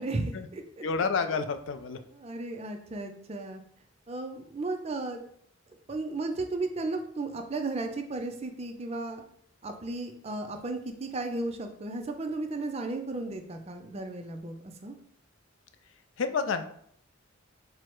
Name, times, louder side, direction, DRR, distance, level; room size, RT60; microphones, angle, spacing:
voice 1, 0.0-0.8 2.1-3.6 4.1-5.2 5.9-9.2 9.6-15.0, right 2 dB, 30° right, 5 dB, 0.4 m, -34 dB
voice 2, 0.8-2.0 16.2-16.6, left 5 dB, 60° left, 9 dB, 0.3 m, -29 dB
4.6 x 2.0 x 4.4 m, 0.65 s
head